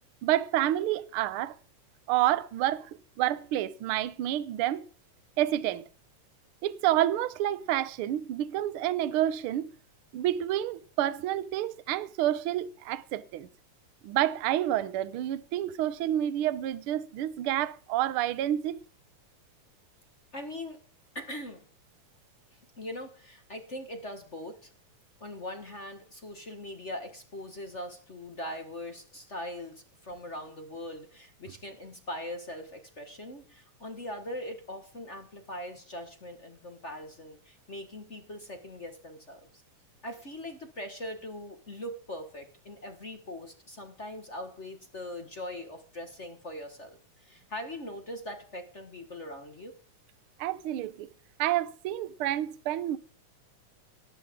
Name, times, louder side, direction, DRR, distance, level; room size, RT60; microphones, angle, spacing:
voice 1, 0.2-1.5 2.1-2.9 3.2-4.8 5.4-5.8 6.6-9.7 10.1-13.5 14.0-18.8 50.4-51.1 51.4-53.0, right 13 dB, 80° right, 1.2 m, -29 dB
voice 2, 20.3-20.8 21.1-21.6 22.5-24.7 25.2-39.4 40.0-49.7, left 1 dB, 35° left, 1.2 m, -41 dB
18.0 x 14.0 x 3.7 m
omnidirectional pair, 3.5 m